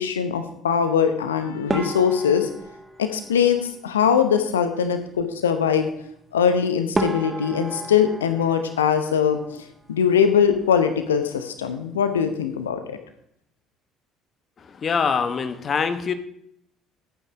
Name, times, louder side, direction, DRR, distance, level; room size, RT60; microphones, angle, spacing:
voice 1, 0.0-2.5 3.0-5.9 6.3-13.0, left 7 dB, 75° left, 8 dB, 0.8 m, -21 dB
sound 1, 1.7-4.2 6.4-6.5 6.9-9.7 10.0-10.8 11.1-11.3 11.6-11.7 12.3-12.6, right 2 dB, 20° right, 1.3 m, -33 dB
voice 2, 14.7-16.1, left 6 dB, 35° left, 11 dB, 0.9 m, -24 dB
11.5 x 8.9 x 5.0 m, 0.72 s
figure-of-eight pair, 55°, 0 cm